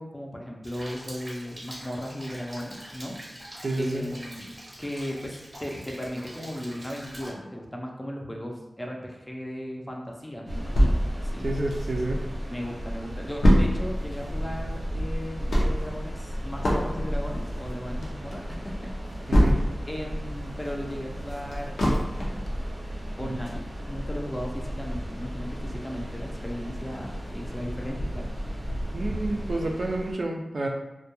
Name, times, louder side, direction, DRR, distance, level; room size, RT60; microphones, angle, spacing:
voice 1, 0.0-3.2 3.8-4.5 4.8-11.5 12.5-19.2 19.9-21.8 23.2-28.3, equal, 15° left, 0 dB, 0.4 m, -36 dB
Rain, 0.6-7.3, equal, 25° right, 0.6 m, -44 dB
voice 2, 3.6-4.1 11.4-12.2 19.3-19.6 23.2-23.3 28.9-30.7, right 2 dB, 70° right, 0 dB, 0.3 m, -29 dB
sound 1, 10.5-30.1, equal, 90° right, 0.7 m, -34 dB
sound 2, 10.8-12.3 12.7-12.8 13.0-20.0 20.4-22.5 23.0-23.1 23.5-23.6, equal, 90° left, 0.5 m, -24 dB
2.2 x 2.2 x 2.9 m, 1.0 s
wide cardioid pair, 70°, 0 cm